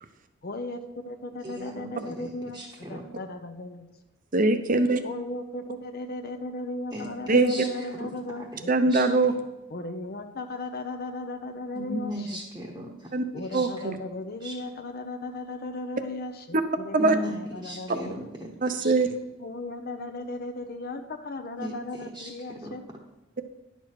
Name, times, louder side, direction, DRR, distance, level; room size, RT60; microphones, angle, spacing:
voice 1, 0.4-3.9 5.0-8.7 9.7-12.1 13.3-18.2 19.4-22.8, left 2 dB, 45° left, 6 dB, 0.6 m, -36 dB
voice 2, 1.4-3.0 6.9-9.1 11.7-13.8 14.4-14.6 17.0-18.5 18.8-18.9 21.6-21.8 22.1-22.8, equal, 15° right, -3 dB, 1.0 m, -38 dB
voice 3, 4.3-5.0 7.3-7.5 8.7-9.3 13.1-13.2 13.5-14.0 16.5-16.6 16.9-17.2 18.6-19.1, right 3 dB, 40° right, 9 dB, 0.7 m, -22 dB
11.0 x 6.7 x 4.7 m, 1.0 s
head